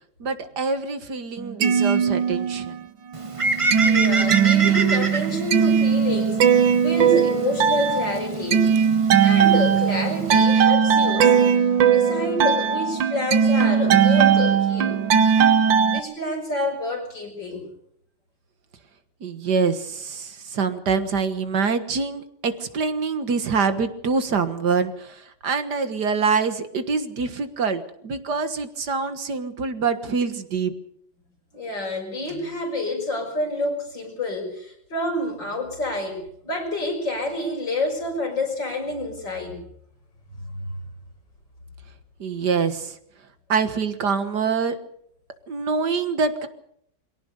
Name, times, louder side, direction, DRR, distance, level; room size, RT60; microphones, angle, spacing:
voice 1, 0.2-2.8 19.2-30.7 42.2-42.9 43.5-44.8 45.5-46.5, right 5 dB, 65° right, 10 dB, 2.1 m, -25 dB
sound 1, 1.4-2.8 3.2-16.0, right 7 dB, 85° right, 1.9 m, -19 dB
Bird, 3.1-10.4, right 3 dB, 20° right, 1.0 m, -29 dB
voice 2, 3.8-8.6 9.2-11.4 11.9-15.0 15.9-17.7 31.5-39.6 40.3-40.8, left 2 dB, 75° left, 2 dB, 6.6 m, -28 dB
23.5 x 17.5 x 6.9 m, 0.70 s
omnidirectional pair, 2.0 m